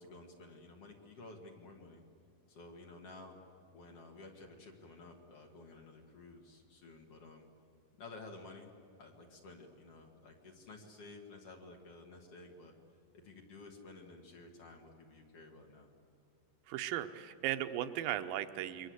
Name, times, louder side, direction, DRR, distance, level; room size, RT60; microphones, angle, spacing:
voice 1, 0.0-2.0 2.5-3.4 3.7-7.5 8.0-8.7 9.0-12.7 13.2-15.9, left 3 dB, 45° left, 2 dB, 2.9 m, -53 dB
voice 2, 16.7-18.9, right 12 dB, 85° right, 9 dB, 2.5 m, -37 dB
28.0 x 22.5 x 8.0 m, 2.3 s
omnidirectional pair, 4.0 m